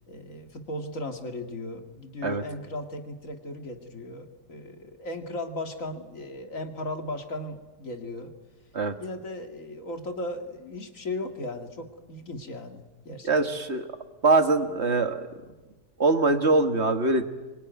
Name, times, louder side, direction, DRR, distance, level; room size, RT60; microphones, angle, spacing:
voice 1, 0.1-8.3 9.0-13.3, left 1 dB, 55° left, 5 dB, 2.6 m, -36 dB
voice 2, 13.2-13.9 14.2-15.2 16.0-17.2, right 3 dB, 40° right, 8 dB, 1.9 m, -22 dB
26.0 x 24.0 x 9.4 m, 1.2 s
omnidirectional pair, 1.7 m